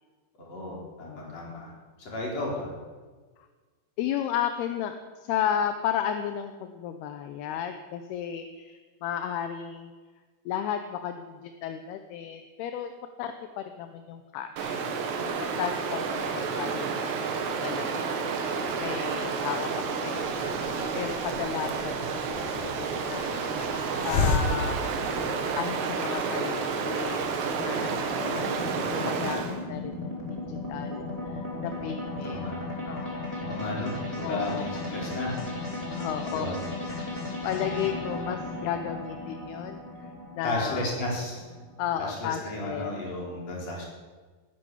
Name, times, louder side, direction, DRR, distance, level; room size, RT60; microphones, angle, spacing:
voice 1, 0.4-1.7 2.0-2.7 32.2-32.6 33.4-35.4 36.3-36.5 40.4-41.4 42.0-43.8, left 1 dB, 40° left, -3 dB, 5.2 m, -33 dB
voice 2, 1.0-1.4 4.0-9.9 10.5-12.9 13.2-14.8 15.6-17.1 17.4-18.0 18.8-20.4 20.9-22.0 22.4-22.5 22.8-23.4 24.0-25.0 25.6-32.4 32.9-33.4 34.2-34.7 35.9-36.6 36.9-37.2 37.4-40.1 40.3-40.9 41.8-42.9, left 9 dB, 80° left, 7 dB, 2.7 m, -34 dB
Stream, 14.6-29.6, right 5 dB, 80° right, 3.8 m, -30 dB
Hiss, 20.2-25.7, left 4 dB, 55° left, 2.3 m, -33 dB
sound 1, 26.2-42.6, left 2 dB, 10° left, 4.7 m, -36 dB
19.0 x 10.5 x 7.1 m, 1.4 s
omnidirectional pair, 4.8 m